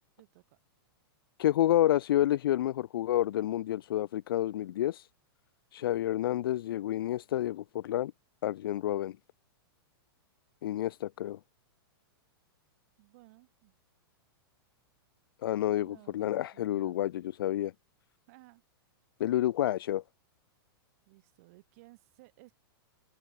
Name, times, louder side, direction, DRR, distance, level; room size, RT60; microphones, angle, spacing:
voice 1, 0.2-0.6 13.0-13.8 15.8-17.1 18.3-18.6 21.1-22.5, right 23 dB, 35° right, 7.6 m, -58 dB
voice 2, 1.4-5.1 5.7-8.1 8.4-9.2 10.6-11.4 15.4-17.7 19.2-20.0, left 13 dB, 60° left, 0.5 m, -29 dB
open air
supercardioid pair, 175°, 13 cm